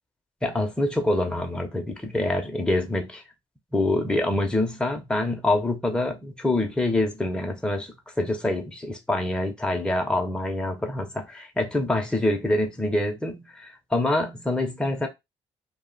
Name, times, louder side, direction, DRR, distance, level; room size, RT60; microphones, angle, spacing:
voice 1, 0.4-3.2 3.7-15.1, left 1 dB, 10° left, 0.8 m, -26 dB
2.4 x 2.2 x 3.9 m
cardioid pair, 85°, 11 cm